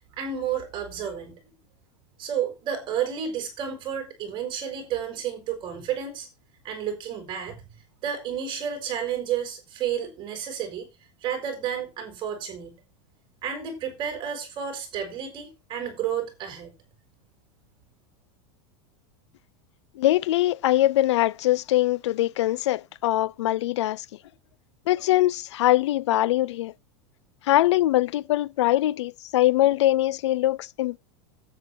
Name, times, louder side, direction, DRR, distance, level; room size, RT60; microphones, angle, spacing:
voice 1, 0.2-1.5 2.2-6.3 6.6-7.6 8.0-10.9 11.2-12.8 13.4-16.8, right 8 dB, 35° right, 5.5 m, -31 dB
voice 2, 20.0-24.0 24.9-26.7 27.4-31.0, left 15 dB, 90° left, 0.6 m, -22 dB
9.8 x 8.8 x 4.5 m
supercardioid pair, 145°, 14 cm